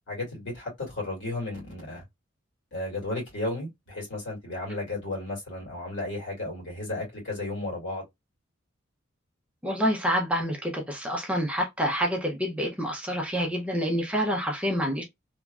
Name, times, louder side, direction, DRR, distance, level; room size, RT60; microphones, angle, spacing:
voice 1, 0.1-2.0 2.7-8.0, left 2 dB, 65° left, 1.9 m, -34 dB
voice 2, 9.6-15.0, equal, 5° right, 0.5 m, -27 dB
3.0 x 2.4 x 2.3 m
head